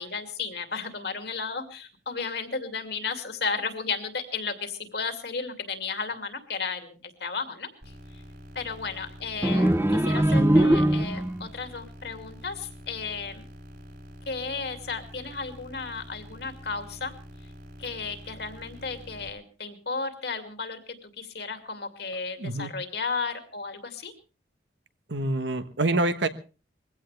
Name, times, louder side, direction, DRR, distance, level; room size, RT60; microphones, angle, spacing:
voice 1, 0.0-7.7 8.5-13.4 14.3-17.1 17.8-24.1, left 4 dB, 60° left, 7 dB, 2.5 m, -34 dB
sound 1, 7.8-19.3, equal, 55° right, 6.5 m, -46 dB
sound 2, 9.4-11.5, right 1 dB, 15° right, 0.7 m, -21 dB
voice 2, 22.4-22.7 25.1-26.3, right 2 dB, 75° right, 10 dB, 1.3 m, -26 dB
22.0 x 16.5 x 3.4 m, 0.35 s
head